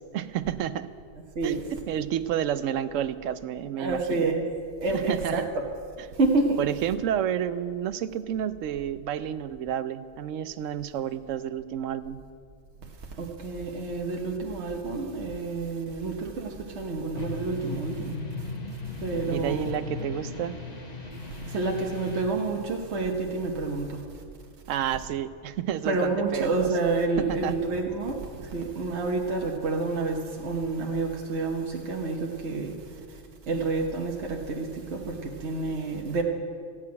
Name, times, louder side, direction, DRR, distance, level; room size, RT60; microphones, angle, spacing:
voice 1, 0.1-0.9 1.4-1.6 1.9-4.3 4.9-5.5 6.6-12.2 19.3-20.6 24.7-26.7 27.2-27.5, right 10 dB, 90° right, 13 dB, 1.0 m, -30 dB
voice 2, 3.8-4.4 4.8-5.7 6.1-6.6 13.2-18.1 19.0-19.8 21.5-24.0 25.8-32.8 33.1-33.2 33.5-36.2, right 3 dB, 65° right, 0 dB, 1.4 m, -29 dB
Space Ship Sound, 17.1-22.2, left 3 dB, 35° left, 1.4 m, -37 dB
15.0 x 6.1 x 9.5 m, 2.2 s
omnidirectional pair, 1.3 m